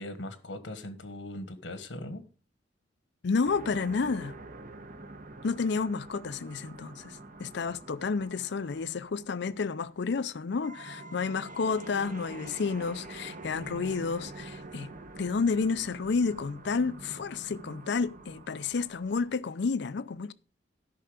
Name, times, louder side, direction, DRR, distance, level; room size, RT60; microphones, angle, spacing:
voice 1, 0.0-2.2, left 1 dB, 85° left, 1.4 m, -40 dB
voice 2, 3.2-4.4 5.4-14.9 15.2-20.3, left 4 dB, 65° left, 0.5 m, -30 dB
sound 1, 3.4-10.3 10.6-19.4, right 2 dB, 45° right, 1.0 m, -46 dB
13.0 x 5.7 x 5.1 m
head